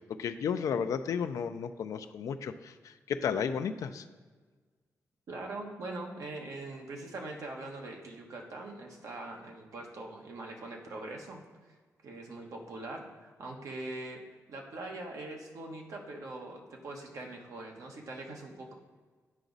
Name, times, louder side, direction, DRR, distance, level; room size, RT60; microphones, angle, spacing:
voice 1, 0.2-4.0, left 7 dB, 75° left, 9 dB, 0.4 m, -33 dB
voice 2, 5.3-11.8 12.0-14.2 14.5-18.7, right 2 dB, 70° right, 1 dB, 1.2 m, -42 dB
9.0 x 4.9 x 4.0 m, 1.4 s
wide cardioid pair, 120°, 6 cm